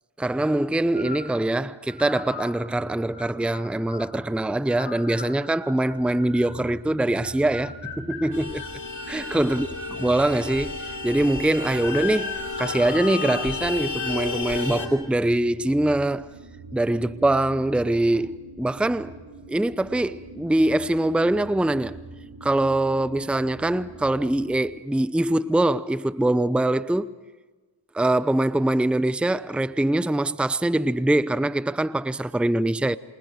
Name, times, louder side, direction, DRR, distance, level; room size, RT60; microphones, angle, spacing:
voice 1, 0.2-8.6 9.1-9.7 10.0-16.3 16.7-19.2 19.5-22.0 22.4-27.1 27.9-33.0, right 1 dB, ahead, 0.7 m, -23 dB
sound 1, 0.9-1.3 1.9-2.5 3.1-4.1 4.7-6.6 7.2-10.0 10.5-11.1 11.5-13.5 14.0-14.2 14.5-14.9, left 5 dB, 65° left, 5.2 m, -38 dB
sound 2, 5.9-24.6, right 2 dB, 65° right, 4.6 m, -44 dB
Vehicle horn car horn honking, 8.3-14.9, left 4 dB, 40° left, 4.8 m, -33 dB
30.0 x 27.5 x 5.2 m
cardioid pair, 40°, 48 cm